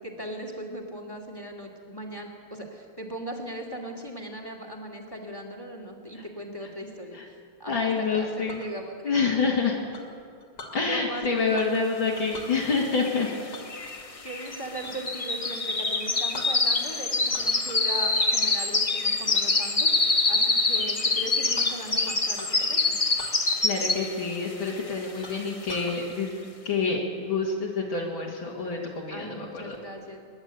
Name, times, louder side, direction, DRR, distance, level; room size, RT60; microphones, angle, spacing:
voice 1, 0.0-9.1 10.8-11.8 14.2-23.0 29.1-30.3, right 1 dB, 10° left, 2 dB, 2.3 m, -38 dB
voice 2, 7.7-8.6 9.0-9.8 10.7-13.3 22.8-23.1 23.6-26.4 26.6-29.8, left 4 dB, 70° left, -5 dB, 2.9 m, -27 dB
Chink clink, 8.2-8.7 9.9-10.8 11.5-11.9 12.2-12.5 13.5-15.1 15.4-15.6 16.0-16.1 16.3-17.0 17.3-18.0 18.3-18.7 19.3-19.5 20.0-20.4 20.7-20.8 21.1-22.7 23.1-23.9 24.2-24.3 24.8-24.9 25.2-26.0, left 2 dB, 50° left, 2.9 m, -44 dB
sound 1, 12.5-12.6 12.8-24.3 24.7-25.0 25.4-25.5, left 3 dB, 30° left, 0.7 m, -25 dB
28.0 x 11.5 x 8.3 m, 2.2 s
omnidirectional pair, 2.3 m